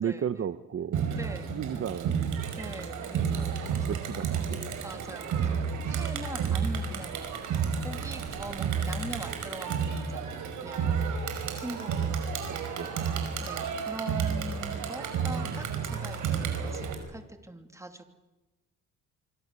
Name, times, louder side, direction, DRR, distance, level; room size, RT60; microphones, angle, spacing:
voice 1, 0.0-1.2 1.5-2.5 3.9-4.7 12.5-12.9, right 8 dB, 45° right, 12 dB, 0.9 m, -34 dB
Crowd, 0.9-16.9, right 6 dB, 80° right, 5.2 m, -31 dB
voice 2, 1.1-1.9 2.6-4.1 4.8-7.4 7.8-12.2 13.4-18.1, right 1 dB, 10° right, 6 dB, 3.0 m, -43 dB
25.5 x 25.0 x 6.9 m, 1.1 s
cardioid pair, 90°, 30 cm